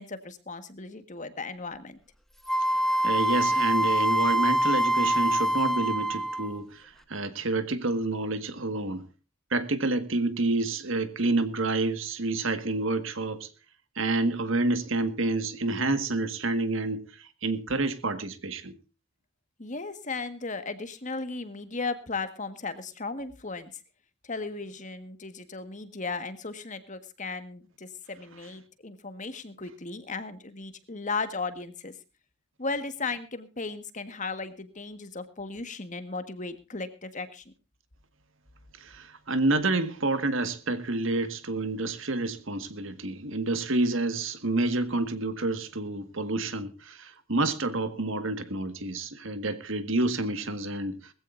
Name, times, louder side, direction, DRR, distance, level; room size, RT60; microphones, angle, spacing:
voice 1, 0.0-2.0 19.6-23.8 24.2-31.9 32.6-37.5, left 3 dB, 35° left, 1.6 m, -36 dB
Wind instrument woodwind instrument, 2.5-6.6, right 1 dB, ahead, 1.0 m, -25 dB
voice 2, 3.0-9.1 9.5-13.5 13.9-18.7 38.8-51.1, right 2 dB, 65° right, 1.7 m, -28 dB
21.0 x 15.5 x 2.6 m
head